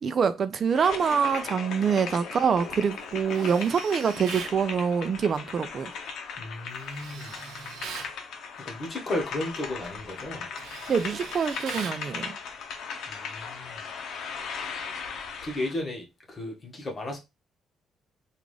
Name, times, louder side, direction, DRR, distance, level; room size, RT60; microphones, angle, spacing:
voice 1, 0.0-5.9 10.9-12.4, right 6 dB, 50° right, 0.4 m, -25 dB
sound 1, 0.7-15.8, left 5 dB, 75° left, 0.7 m, -38 dB
Tools, 3.3-4.6 6.8-8.1 9.6-9.9 10.2-12.1, right 6 dB, 80° right, 0.7 m, -40 dB
voice 2, 6.4-7.4 7.8-8.1 8.6-10.5 13.1-13.8 15.4-17.2, left 1 dB, 35° left, 1.3 m, -34 dB
3.6 x 2.4 x 3.2 m
cardioid pair, 90°, 0 cm